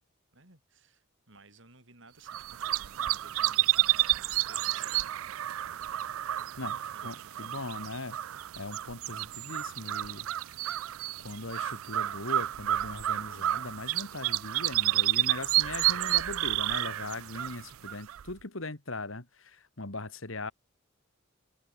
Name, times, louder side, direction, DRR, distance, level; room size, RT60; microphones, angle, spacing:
voice 1, 0.3-5.3 6.6-7.7, right 3 dB, 60° right, 7.2 m, -57 dB
sound 1, 2.3-18.3, right 15 dB, 80° right, 0.4 m, -30 dB
voice 2, 7.0-10.6 11.2-20.5, left 2 dB, 70° left, 2.6 m, -40 dB
head